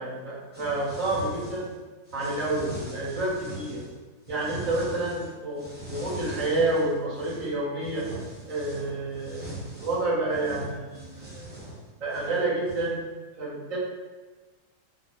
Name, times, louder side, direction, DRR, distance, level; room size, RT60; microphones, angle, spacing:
voice 1, 0.0-1.7 2.1-3.8 4.3-8.1 8.5-11.5 12.0-13.0 13.4-13.8, right 2 dB, 60° right, -6 dB, 1.3 m, -29 dB
sound 1, 0.5-1.8 2.1-3.9 4.3-5.3 5.6-7.5 7.8-13.0, right 2 dB, 10° right, 0.6 m, -41 dB
4.2 x 2.0 x 2.9 m, 1.3 s
omnidirectional pair, 1.7 m